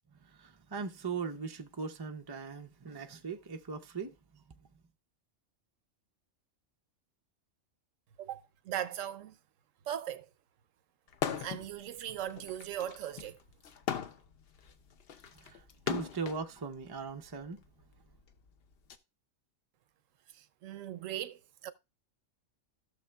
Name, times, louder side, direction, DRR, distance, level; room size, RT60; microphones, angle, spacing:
voice 1, 0.2-4.7 15.3-17.6, right 5 dB, 35° right, 0.3 m, -40 dB
voice 2, 8.2-9.4 9.9-10.2 11.4-13.4 20.3-21.7, right 11 dB, 80° right, 1.0 m, -39 dB
sound 1, 11.1-11.7 12.1-16.4 17.3-19.0, left 8 dB, 55° left, 0.8 m, -38 dB
15.5 x 6.6 x 2.3 m
omnidirectional pair, 1.3 m